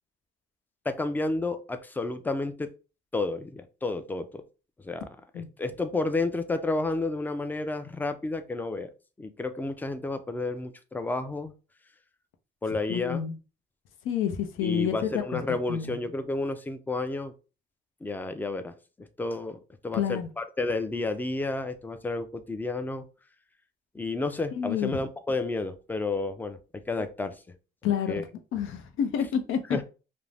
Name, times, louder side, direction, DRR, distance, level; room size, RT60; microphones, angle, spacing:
voice 1, 0.9-2.7 3.1-4.4 4.8-5.0 5.3-8.9 9.2-11.5 12.6-13.2 14.6-17.3 18.0-23.0 23.9-27.4 28.1-28.2 29.7-29.8, left 2 dB, 10° left, 0.3 m, -31 dB
voice 2, 12.9-13.3 14.0-15.4 15.7-16.0 19.9-20.3 24.5-25.0 27.8-28.2 28.5-29.6, left 8 dB, 85° left, 0.5 m, -29 dB
2.5 x 2.0 x 3.2 m
cardioid pair, 90°, 20 cm